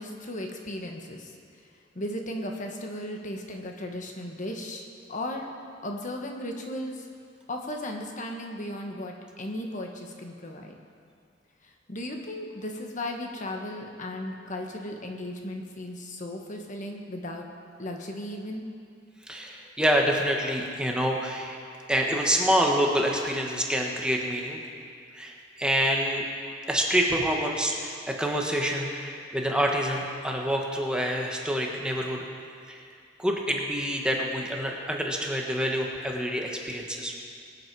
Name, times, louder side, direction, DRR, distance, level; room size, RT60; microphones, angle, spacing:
voice 1, 0.0-1.3 1.9-5.5 5.8-7.1 7.5-10.8 11.6-17.5 17.8-18.7, left 1 dB, 45° left, 2 dB, 1.2 m, -36 dB
voice 2, 19.3-21.6 21.9-24.6 25.1-26.2 26.7-32.2 32.7-32.8 33.2-37.1, equal, 5° right, 0 dB, 1.3 m, -27 dB
22.5 x 8.6 x 4.7 m, 2.3 s
head